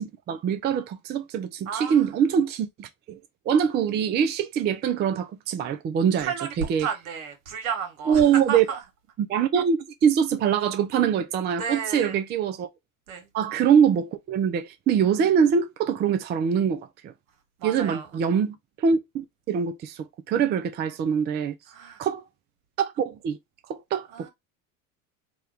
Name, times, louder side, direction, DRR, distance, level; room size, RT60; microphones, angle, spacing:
voice 1, 0.0-3.2 3.5-6.9 8.1-8.7 9.2-12.7 13.3-17.1 17.6-21.5 22.0-22.2 22.8-23.4 23.7-24.3, right 7 dB, 25° right, 0.4 m, -24 dB
voice 2, 1.7-2.1 6.2-6.5 6.8-8.8 11.6-12.2 13.1-13.3 17.6-18.1 21.7-22.0 24.1-24.3, right 7 dB, 75° right, 1.3 m, -32 dB
2.9 x 2.3 x 3.3 m
hypercardioid pair, 85°, 42 cm